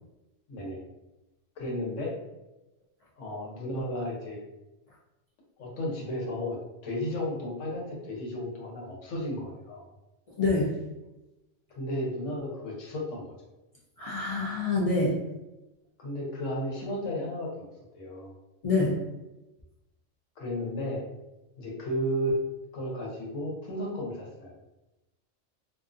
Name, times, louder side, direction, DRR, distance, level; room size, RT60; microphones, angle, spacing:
voice 1, 0.5-0.8 1.6-2.1 3.2-4.4 5.6-6.6 6.8-9.9 11.7-13.3 16.0-17.7 17.9-18.3 20.4-21.0 21.6-22.4 22.7-24.5, equal, 85° left, -2 dB, 1.1 m, -33 dB
voice 2, 10.3-10.8 14.0-15.2 18.6-19.0, left 2 dB, 65° left, -5 dB, 0.3 m, -26 dB
2.5 x 2.4 x 2.4 m, 1.0 s
omnidirectional pair, 1.2 m